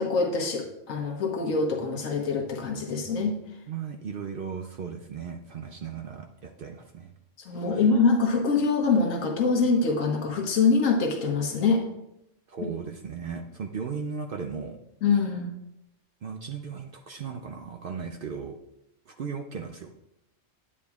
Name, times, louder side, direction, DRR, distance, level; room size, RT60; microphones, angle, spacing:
voice 1, 0.0-3.4 7.4-11.9 12.6-12.7 15.0-15.5, left 4 dB, 85° left, 2 dB, 1.5 m, -24 dB
voice 2, 3.7-7.1 7.5-7.7 12.5-14.8 16.2-18.6 19.1-19.9, right 6 dB, 60° right, 4 dB, 0.6 m, -36 dB
9.8 x 8.5 x 2.4 m, 0.85 s
omnidirectional pair, 1.3 m